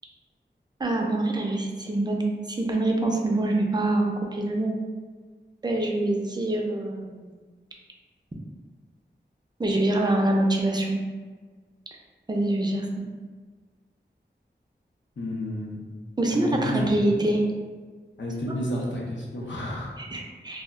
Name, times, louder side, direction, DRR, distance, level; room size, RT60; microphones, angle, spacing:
voice 1, 0.8-4.8 5.6-7.3 9.6-11.0 12.3-13.0 16.2-17.4 20.0-20.6, right 1 dB, 25° right, 0 dB, 0.4 m, -25 dB
voice 2, 15.2-15.8 16.3-16.9 18.2-19.9, left 1 dB, 80° left, -3 dB, 0.6 m, -31 dB
2.2 x 2.0 x 3.5 m, 1.4 s
wide cardioid pair, 60°, 19 cm